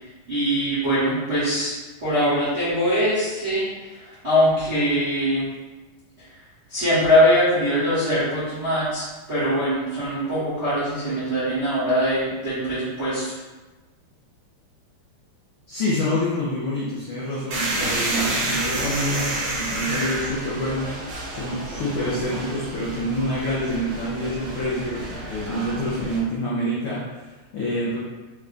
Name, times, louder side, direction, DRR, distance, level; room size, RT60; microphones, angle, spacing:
voice 1, 0.3-1.7 2.0-3.7 4.0-5.5 6.7-13.3, equal, 50° right, -13 dB, 0.8 m, -22 dB
voice 2, 15.7-28.0, equal, 85° left, -7 dB, 1.2 m, -27 dB
sound 1, 17.5-26.2, right 2 dB, 70° right, 2.1 m, -29 dB
5.4 x 2.5 x 3.3 m, 1.2 s
omnidirectional pair, 3.6 m